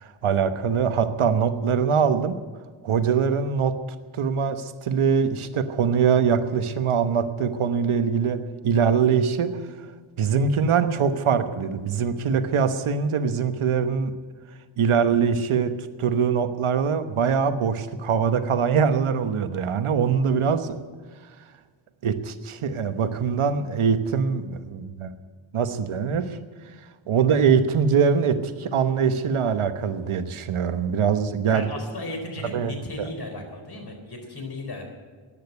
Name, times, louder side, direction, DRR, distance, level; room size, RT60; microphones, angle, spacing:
voice 1, 0.0-2.4 2.8-3.8 4.1-9.5 10.2-14.1 14.8-15.7 16.0-20.8 22.0-25.1 25.5-26.4 27.1-31.7 32.5-32.7, right 6 dB, 90° right, 10 dB, 1.2 m, -23 dB
voice 2, 31.5-34.9, left 2 dB, 50° left, 4 dB, 4.1 m, -35 dB
14.0 x 10.5 x 9.5 m, 1.5 s
wide cardioid pair, 80°, 48 cm